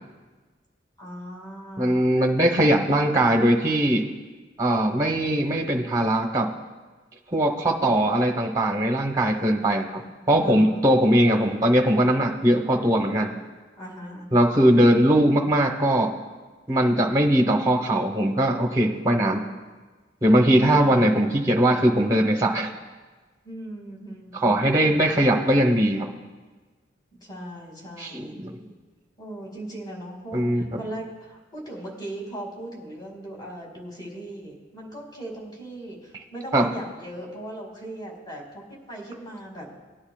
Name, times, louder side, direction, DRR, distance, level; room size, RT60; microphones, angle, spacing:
voice 1, 1.0-2.1 10.4-11.2 13.8-14.5 23.4-24.9 27.2-28.4 29.2-39.7, right 1 dB, 20° left, -1 dB, 2.4 m, -38 dB
voice 2, 1.8-4.0 4.6-6.5 7.3-10.0 10.3-13.3 14.3-16.1 16.7-19.4 20.2-22.7 24.3-26.1 28.0-28.6 30.3-30.8 36.5-36.6, right 1 dB, 15° right, 2 dB, 0.9 m, -20 dB
19.5 x 9.7 x 2.4 m, 1.3 s
head